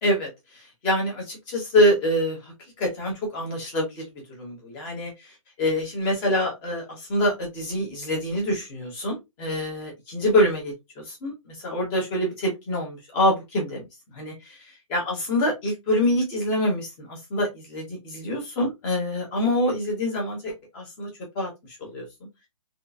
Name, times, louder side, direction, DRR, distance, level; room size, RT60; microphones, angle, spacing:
voice 1, 0.0-5.1 5.6-13.8 14.1-21.1 21.3-22.1, left 1 dB, 10° left, -1 dB, 0.7 m, -26 dB
3.6 x 2.4 x 2.4 m, 0.20 s
hypercardioid pair, 175°, 18 cm